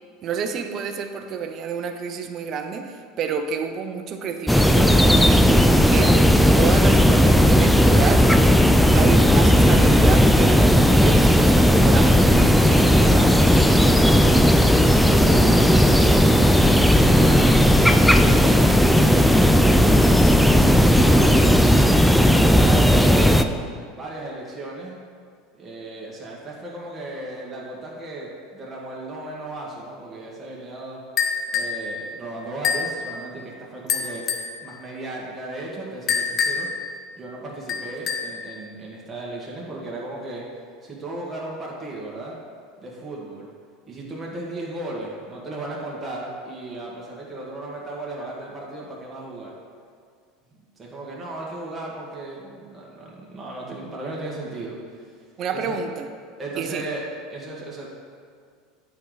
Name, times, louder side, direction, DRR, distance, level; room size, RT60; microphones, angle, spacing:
voice 1, 0.2-8.4 8.9-13.3 55.4-56.1 56.6-56.8, right 6 dB, 45° right, 6 dB, 0.7 m, -29 dB
sound 1, 4.5-23.4, equal, ahead, 0.3 m, -15 dB
voice 2, 13.8-15.5 16.2-16.6 17.0-17.6 18.1-19.7 20.5-21.3 21.8-23.5 23.9-25.0 25.6-31.0 31.5-34.2 34.6-36.7 37.1-40.4 40.8-42.4 42.8-43.5 43.9-49.5 50.8-55.0 55.5-55.8 56.4-57.0 57.3-57.9, right 2 dB, 20° right, -5 dB, 1.7 m, -35 dB
sound 2, 31.2-31.8 32.6-33.0 33.9-34.5 36.1-36.8 37.7-38.4, left 6 dB, 40° left, 0.8 m, -25 dB
8.4 x 4.8 x 4.0 m, 2.1 s
supercardioid pair, 110°, 0 cm